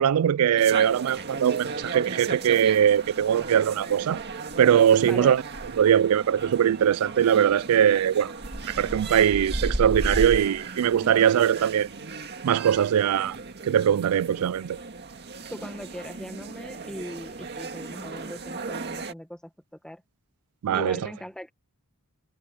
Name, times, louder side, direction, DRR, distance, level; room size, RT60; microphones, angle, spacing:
voice 1, 0.0-4.2 4.6-5.4 5.8-8.3 8.8-11.9 12.4-13.4 13.7-14.8 20.6-21.0, right 9 dB, 70° right, 0.3 m, -21 dB
sound 1, 0.6-19.1, right 3 dB, 50° right, 1.9 m, -35 dB
voice 2, 5.0-5.4 15.5-20.0 20.7-21.5, equal, 5° left, 1.3 m, -39 dB
head